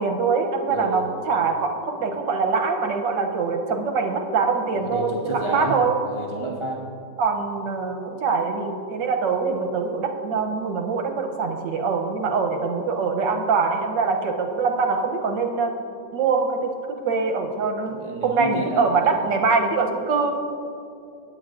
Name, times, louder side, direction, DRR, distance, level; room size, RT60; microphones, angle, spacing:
voice 1, 0.0-5.9 7.2-15.7 16.1-18.0 18.2-20.3, right 4 dB, 75° right, 3 dB, 1.5 m, -23 dB
voice 2, 0.7-1.0 4.7-5.8 6.1-6.8 17.9-19.2, right 1 dB, 40° right, -2 dB, 0.4 m, -30 dB
18.0 x 8.7 x 2.5 m, 2.6 s
omnidirectional pair, 2.0 m